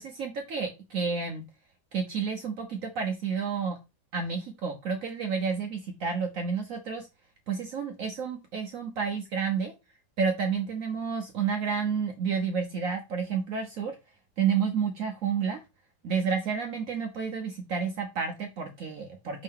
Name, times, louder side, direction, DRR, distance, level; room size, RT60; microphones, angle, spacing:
voice 1, 0.0-1.4 1.9-3.8 4.1-7.1 7.5-9.7 10.2-14.0 14.4-15.6 16.0-19.4, right 6 dB, 65° right, 3 dB, 0.8 m, -30 dB
5.4 x 2.8 x 3.5 m, 0.26 s
omnidirectional pair, 2.1 m